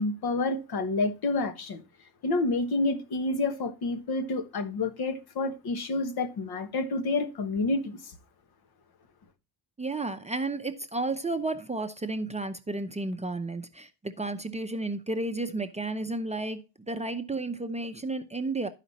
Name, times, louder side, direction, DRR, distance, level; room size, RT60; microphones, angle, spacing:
voice 1, 0.0-1.8 2.2-8.1, left 2 dB, 60° left, 1.4 m, -29 dB
voice 2, 9.8-18.7, right 2 dB, 15° right, 0.6 m, -32 dB
13.0 x 5.0 x 4.1 m
cardioid pair, 95°, 43 cm